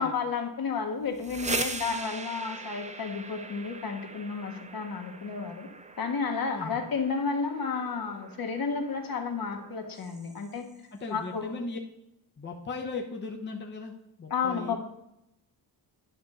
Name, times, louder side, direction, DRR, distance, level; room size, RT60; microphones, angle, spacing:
voice 1, 0.0-5.7 6.0-10.7 11.1-11.5 14.3-14.8, left 5 dB, 55° left, 3 dB, 1.4 m, -32 dB
sound 1, 1.0-10.8, right 3 dB, 15° right, 0.6 m, -41 dB
voice 2, 10.9-11.8 12.4-14.8, left 3 dB, 25° left, 1 dB, 0.9 m, -37 dB
10.5 x 5.3 x 4.2 m, 0.84 s
cardioid pair, 115°, 42 cm